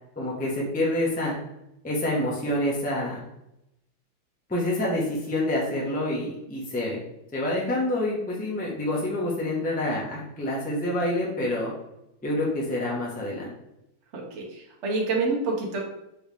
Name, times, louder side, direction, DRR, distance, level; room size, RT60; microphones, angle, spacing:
voice 1, 0.2-1.3 1.8-3.2 4.5-7.0 7.3-11.7 12.2-13.5, left 1 dB, 5° left, -4 dB, 0.7 m, -27 dB
voice 2, 14.1-15.8, right 3 dB, 50° right, -1 dB, 0.9 m, -27 dB
4.7 x 3.2 x 3.5 m, 0.84 s
omnidirectional pair, 2.2 m